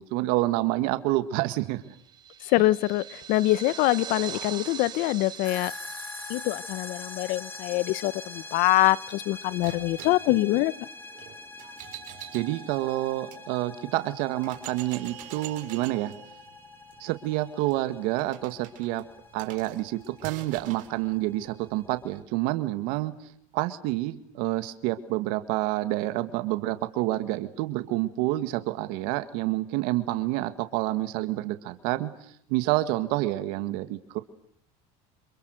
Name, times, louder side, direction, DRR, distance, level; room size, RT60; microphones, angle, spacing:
voice 1, 0.0-1.8 12.3-16.1 17.0-19.0 19.3-34.2, right 17 dB, 70° right, 1.9 m, -28 dB
sound 1, 1.8-8.7, right 9 dB, 25° right, 3.5 m, -43 dB
voice 2, 2.4-5.7 6.3-10.7, left 18 dB, 60° left, 1.0 m, -24 dB
sound 2, 5.4-22.2, left 3 dB, 15° left, 2.5 m, -44 dB
sound 3, 9.6-13.4 14.0-14.1 14.4-21.0, right 14 dB, 55° right, 4.1 m, -46 dB
28.5 x 27.5 x 6.6 m
cardioid pair, 140°, 16 cm